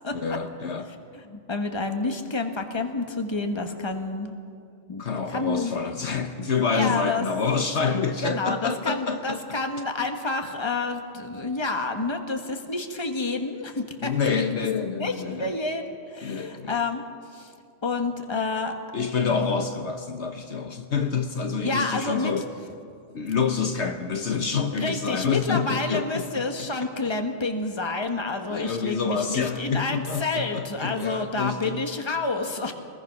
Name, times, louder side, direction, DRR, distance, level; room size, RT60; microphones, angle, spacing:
voice 1, 0.1-0.9 5.0-9.4 14.0-15.5 16.2-16.8 18.9-22.5 23.1-26.7 28.5-31.8, left 5 dB, 65° left, 6 dB, 1.2 m, -27 dB
voice 2, 1.1-4.3 4.9-5.0 5.3-5.8 6.7-7.2 7.9-8.0 8.2-14.1 15.0-17.0 17.3-17.5 17.8-18.7 19.3-19.5 21.6-22.3 24.7-32.7, left 3 dB, 20° left, 5 dB, 1.4 m, -29 dB
24.0 x 20.5 x 6.0 m, 2.3 s
omnidirectional pair, 1.3 m